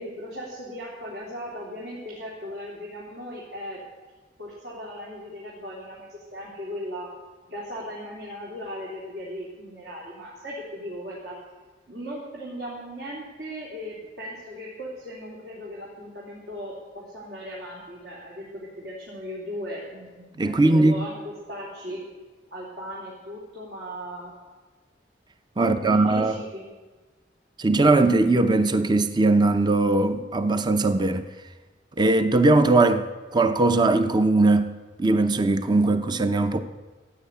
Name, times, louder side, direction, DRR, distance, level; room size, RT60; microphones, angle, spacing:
voice 1, 0.0-3.8 4.4-7.1 7.5-11.4 11.9-22.0 22.5-24.3 25.6-26.7, equal, 70° right, 3.3 m, -37 dB
voice 2, 20.4-21.0 25.6-26.4 27.6-31.3 32.0-33.1 33.3-36.6, right 2 dB, 25° right, 0.6 m, -20 dB
15.5 x 9.3 x 8.2 m
head